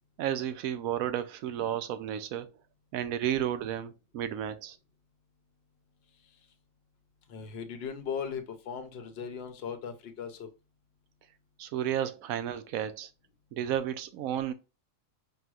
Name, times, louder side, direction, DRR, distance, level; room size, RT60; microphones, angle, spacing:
voice 1, 0.2-2.5 2.9-4.8 11.6-13.1 13.5-14.5, right 10 dB, 85° right, 1.0 m, -32 dB
voice 2, 7.3-10.5, left 7 dB, 55° left, 0.8 m, -38 dB
5.3 x 3.0 x 2.3 m
omnidirectional pair, 1.4 m